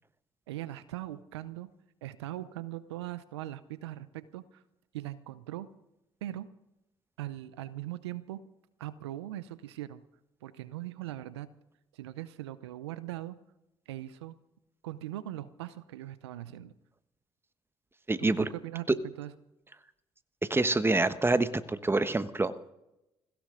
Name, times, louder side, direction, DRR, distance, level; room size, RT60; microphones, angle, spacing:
voice 1, 0.5-1.7 2.0-4.6 4.9-5.7 6.2-6.5 7.2-8.4 8.8-10.0 10.4-11.5 11.9-13.4 13.9-14.3 14.8-16.7 18.2-18.9 19.2-19.3, right 14 dB, 85° right, 16 dB, 0.7 m, -40 dB
voice 2, 18.1-18.4 20.5-22.7, right 2 dB, 15° right, 13 dB, 1.2 m, -27 dB
21.5 x 16.5 x 3.8 m, 0.90 s
hypercardioid pair, 50°, 14 cm